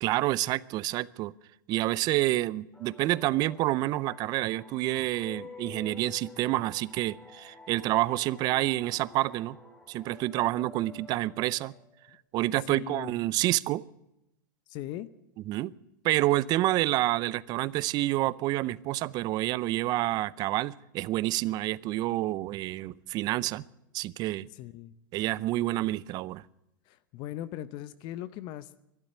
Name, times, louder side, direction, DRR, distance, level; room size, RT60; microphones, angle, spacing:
voice 1, 0.0-1.3 1.7-9.6 9.9-11.7 12.3-13.8 15.5-15.7 16.0-23.6 23.9-24.5 25.1-26.4, right 16 dB, 40° right, 21 dB, 0.5 m, -28 dB
sound 1, 2.7-12.1, left 3 dB, 5° left, 1.7 m, -50 dB
voice 2, 12.7-13.1 14.7-15.1 24.5-24.9 26.9-28.8, left 13 dB, 45° left, 15 dB, 0.7 m, -39 dB
12.0 x 11.5 x 10.0 m, 0.86 s
hypercardioid pair, 120°, 11 cm